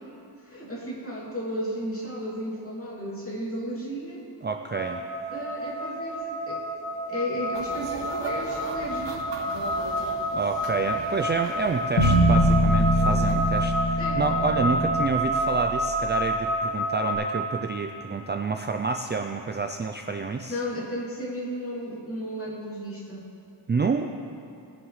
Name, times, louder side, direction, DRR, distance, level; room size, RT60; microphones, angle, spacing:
voice 1, 0.4-4.2 5.3-6.6 7.1-9.2 14.0-14.2 20.5-23.2, equal, 30° left, -5 dB, 2.7 m, -34 dB
voice 2, 4.4-5.1 10.3-20.6 23.7-24.1, right 4 dB, 25° right, 4 dB, 0.4 m, -28 dB
sound 1, 4.7-17.1, equal, 15° left, 1.9 m, -29 dB
sound 2, 7.5-13.7, right 3 dB, 70° right, 1.3 m, -40 dB
sound 3, 12.0-16.2, equal, 70° left, 1.2 m, -23 dB
20.0 x 7.3 x 3.2 m, 2.6 s
wide cardioid pair, 115°, 44 cm